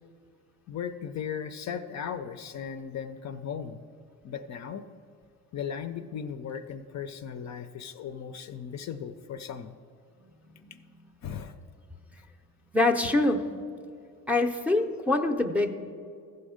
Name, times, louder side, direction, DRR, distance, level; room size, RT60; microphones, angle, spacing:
voice 1, 0.7-3.8 4.2-4.8 5.5-9.7 11.2-11.5 13.0-13.1, left 7 dB, 45° left, 8 dB, 0.5 m, -37 dB
voice 2, 12.7-13.4 14.3-15.7, left 2 dB, 5° right, 2 dB, 0.6 m, -25 dB
14.5 x 5.4 x 5.0 m, 2.4 s
cardioid pair, 95°, 38 cm